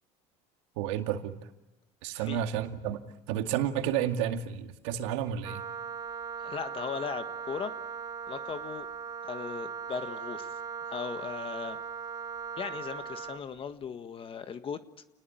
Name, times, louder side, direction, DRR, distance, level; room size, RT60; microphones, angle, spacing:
voice 1, 0.8-1.4 2.0-3.0 3.3-5.6, right 10 dB, 85° right, 6 dB, 2.2 m, -31 dB
Wind instrument woodwind instrument, 5.4-13.5, right 6 dB, 30° right, 1.8 m, -39 dB
voice 2, 6.4-7.7 8.3-8.9 9.2-10.5 10.9-11.8 12.6-14.8, left 7 dB, 35° left, 9 dB, 1.6 m, -37 dB
29.0 x 19.5 x 9.3 m, 1.0 s
supercardioid pair, 105°, 15 cm